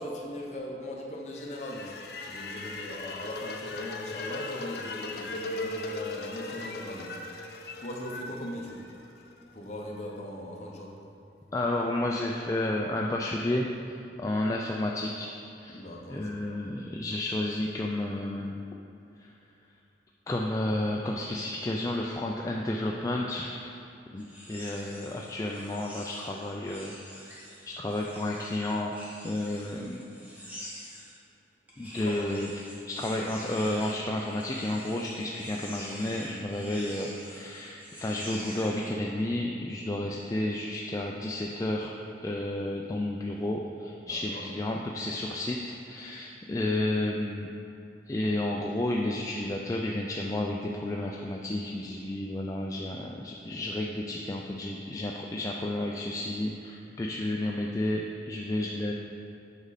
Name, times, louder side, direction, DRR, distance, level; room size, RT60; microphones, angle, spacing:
voice 1, 0.0-1.9 2.3-7.2 7.4-8.8 9.5-10.9 15.7-16.3 31.8-32.2 44.0-44.4, left 1 dB, 40° left, -1 dB, 0.9 m, -39 dB
sound 1, 1.3-9.4, left 2 dB, 60° left, 0.6 m, -38 dB
voice 2, 11.5-15.3 15.6-15.8 16.1-18.6 19.2-19.3 20.3-23.8 24.1-26.9 27.7-28.9 29.2-30.0 31.8-32.5 32.9-41.9 42.2-47.5 48.1-58.9, left 1 dB, 20° left, -1 dB, 0.3 m, -31 dB
sound 2, 24.2-31.1 31.7-38.9, equal, 10° right, 1.1 m, -46 dB
8.0 x 5.2 x 4.1 m, 2.7 s
head